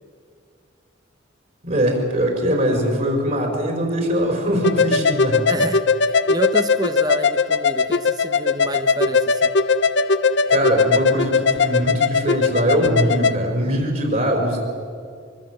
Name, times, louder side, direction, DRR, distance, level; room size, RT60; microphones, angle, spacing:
voice 1, 1.6-5.5 10.5-14.6, equal, 45° right, 2 dB, 4.9 m, -21 dB
sound 1, 4.6-13.3, left 4 dB, 60° left, 0.8 m, -19 dB
voice 2, 5.5-9.5, right 1 dB, 20° right, 8 dB, 1.0 m, -29 dB
24.5 x 24.0 x 7.7 m, 2.3 s
head